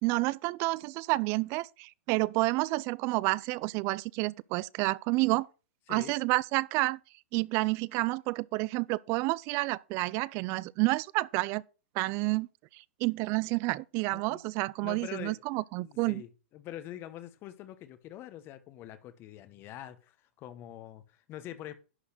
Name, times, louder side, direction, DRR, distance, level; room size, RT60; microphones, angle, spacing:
voice 1, 0.0-5.5 5.9-7.0 7.3-11.6 12.0-12.5 13.0-16.2, right 23 dB, 40° right, 0.4 m, -29 dB
voice 2, 14.8-15.4 15.8-21.7, left 12 dB, 35° left, 1.1 m, -45 dB
11.0 x 4.1 x 6.6 m
hypercardioid pair, 125°, 7 cm